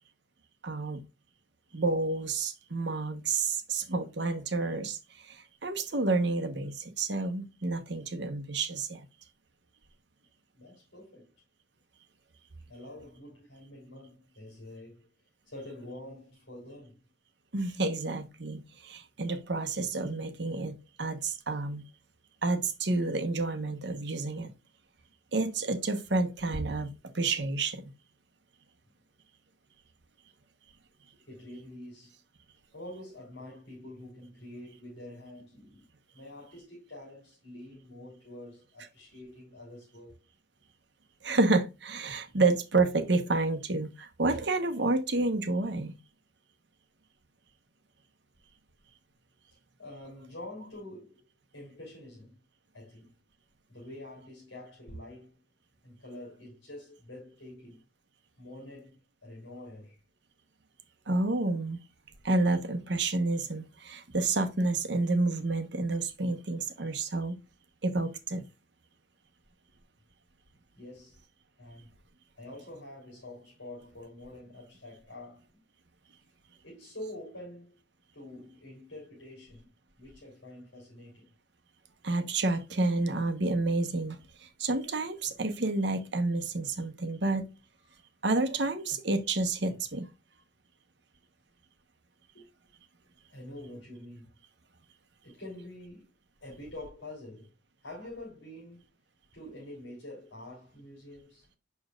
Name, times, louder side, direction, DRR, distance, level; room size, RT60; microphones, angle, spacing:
voice 1, 0.6-1.0 1.7-9.0 17.5-21.8 22.4-24.5 25.3-27.8 41.2-46.0 61.1-61.8 62.2-67.4 67.8-68.4 82.0-87.4 88.2-90.1, right 3 dB, 65° right, 1.1 m, -29 dB
voice 2, 10.5-11.3 12.7-15.1 15.5-17.0 31.2-32.1 32.7-35.9 36.1-40.2 49.4-51.2 51.5-52.4 52.7-53.1 53.7-55.4 55.8-57.8 58.4-60.0 70.8-71.2 71.6-71.9 72.4-75.5 76.6-77.8 78.1-79.7 80.0-81.3 87.9-88.0 92.3-92.5 93.3-94.3 95.2-96.1 96.4-97.5 97.8-98.8 99.3-101.5, left 1 dB, 75° left, 3.5 m, -46 dB
7.0 x 6.4 x 2.4 m
head